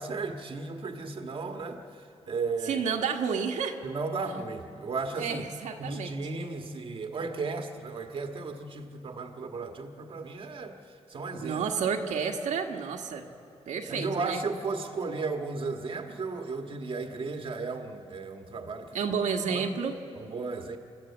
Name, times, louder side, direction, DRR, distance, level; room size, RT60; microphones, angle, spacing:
voice 1, 0.0-2.8 3.8-5.4 5.8-11.6 13.9-19.0 19.5-19.8 20.1-20.8, right 4 dB, 45° right, 4 dB, 1.6 m, -35 dB
voice 2, 2.7-3.8 5.2-6.1 11.4-13.3 13.7-14.4 18.9-20.0, right 6 dB, 90° right, 1 dB, 1.6 m, -30 dB
29.0 x 13.0 x 8.4 m, 2.4 s
cardioid pair, 120°, 12 cm